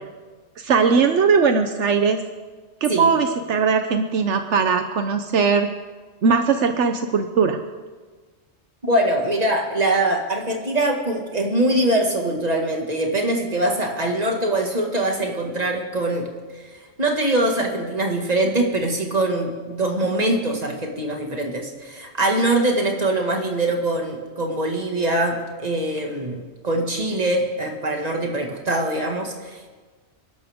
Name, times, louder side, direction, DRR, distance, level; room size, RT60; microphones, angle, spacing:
voice 1, 0.6-2.2 2.8-5.7 6.2-7.6, right 5 dB, 80° right, 7 dB, 1.1 m, -19 dB
voice 2, 8.8-16.6 17.0-29.7, right 1 dB, 35° right, 2 dB, 2.0 m, -23 dB
27.5 x 12.0 x 3.6 m, 1.4 s
omnidirectional pair, 1.2 m